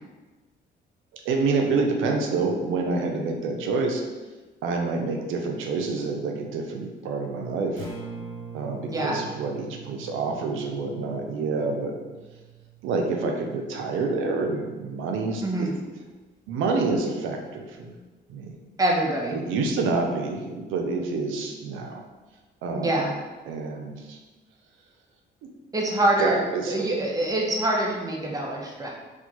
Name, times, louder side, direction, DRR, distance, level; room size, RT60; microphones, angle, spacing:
voice 1, 1.2-4.0 4.6-7.9 8.5-12.0 12.8-15.7 16.5-17.9 18.3-18.6 19.3-22.0 22.6-23.0 23.5-24.2 25.4-25.5 26.2-26.9, right 3 dB, 90° right, 2 dB, 0.5 m, -27 dB
Acoustic guitar, 7.7-15.8, right 5 dB, 85° left, 1.5 m, -44 dB
voice 2, 8.8-9.2 15.4-15.7 18.8-19.4 22.7-23.1 25.7-26.4 26.7-28.9, right 1 dB, 20° right, -1 dB, 0.7 m, -25 dB
4.2 x 2.2 x 2.9 m, 1.2 s
cardioid pair, 90°, 20 cm